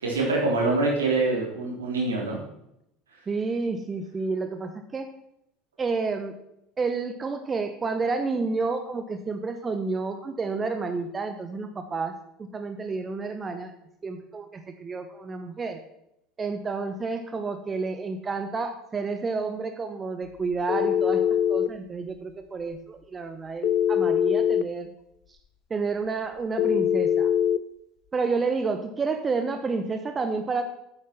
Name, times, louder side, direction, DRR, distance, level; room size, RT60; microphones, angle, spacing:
voice 1, 0.0-2.4, right 3 dB, 75° right, -2 dB, 3.7 m, -25 dB
voice 2, 3.3-5.1 5.8-6.4 6.8-12.1 12.4-13.7 14.0-15.8 16.4-21.2 21.5-24.9 25.7-27.3 28.1-30.6, right 4 dB, 25° right, 7 dB, 1.1 m, -30 dB
Telephone, 20.7-21.7 23.6-24.7 26.6-27.6, left 9 dB, 45° left, 0.6 m, -22 dB
9.5 x 8.8 x 6.0 m, 0.80 s
figure-of-eight pair, 70°, 0 cm